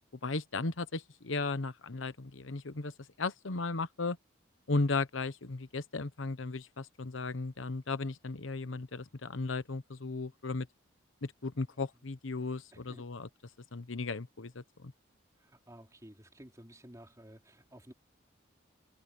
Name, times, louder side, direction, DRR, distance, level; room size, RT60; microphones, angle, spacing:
voice 1, 0.2-2.9 3.2-4.2 4.7-10.7 11.2-13.3 13.7-14.9, left 3 dB, 85° left, 1.0 m, -35 dB
voice 2, 12.7-13.1 15.4-17.9, equal, 15° right, 4.0 m, -54 dB
head